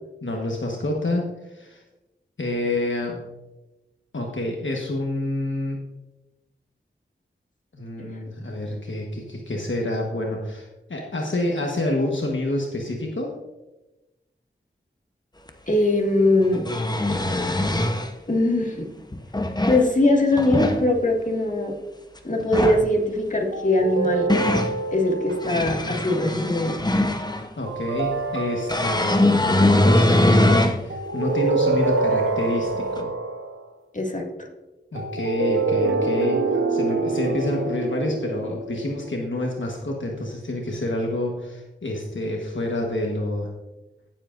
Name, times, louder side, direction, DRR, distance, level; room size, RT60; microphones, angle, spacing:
voice 1, 0.2-1.8 2.4-3.2 4.1-5.8 7.7-13.3 27.6-33.1 34.9-36.4 36.7-43.5, left 1 dB, 70° left, 0 dB, 1.3 m, -28 dB
sound 1, 15.5-15.6 16.4-18.1 19.1-19.9 20.3-20.8 22.4-22.9 23.8-24.7 25.3-27.5 28.7-30.8 31.3-31.4 33.0-33.1, left 1 dB, 20° left, 0.8 m, -21 dB
voice 2, 15.6-16.7 18.3-18.8 19.7-21.7 22.2-24.3 24.9-26.8 33.9-34.5, left 2 dB, 40° left, 0 dB, 1.9 m, -21 dB
sound 2, 23.5-26.0 27.7-29.5 30.9-33.6 35.0-39.5, right 3 dB, 90° right, 0.9 m, -26 dB
16.0 x 7.5 x 2.5 m, 1.0 s
wide cardioid pair, 50°, 20 cm